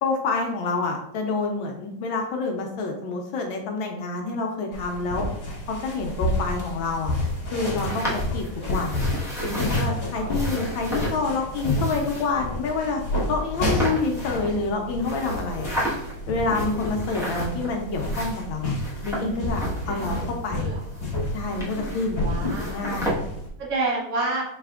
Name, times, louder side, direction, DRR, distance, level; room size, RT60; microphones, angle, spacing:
voice 1, 0.0-5.3 5.7-7.1 7.5-9.0 9.4-13.0 13.3-15.7 16.3-18.7 19.0-20.7 21.3-22.2 22.7-23.2, left 3 dB, 75° left, 2 dB, 1.3 m, -28 dB
sound 1, 4.7-23.5, left 1 dB, 20° left, 0.8 m, -30 dB
sound 2, 7.1-9.9 10.3-11.2 11.5-12.3 13.0-13.1 13.5-14.7 15.0-16.1 16.5-17.7 17.9-20.5 20.8-22.2 22.4-23.1, equal, 5° right, 0.4 m, -33 dB
voice 2, 10.2-10.5 13.8-14.0 19.9-20.2 20.5-20.8 22.2-23.0 23.6-24.4, right 3 dB, 45° right, -4 dB, 1.4 m, -30 dB
4.9 x 4.1 x 2.4 m, 0.75 s
omnidirectional pair, 2.4 m